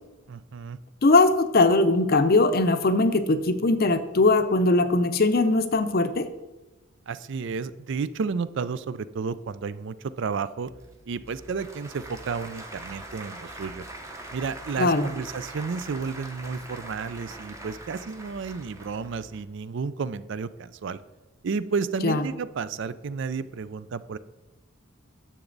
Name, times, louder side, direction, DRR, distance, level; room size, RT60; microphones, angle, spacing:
voice 1, 0.3-0.8 7.1-10.7 11.1-13.8 14.3-21.0 21.4-24.2, right 5 dB, 60° right, 15 dB, 0.4 m, -32 dB
voice 2, 1.0-6.3 14.8-15.1 22.0-22.3, left 2 dB, 45° left, 10 dB, 0.6 m, -20 dB
Applause / Crowd, 10.7-19.4, right 1 dB, 15° right, 0.8 m, -43 dB
10.0 x 7.2 x 3.9 m, 1.1 s
head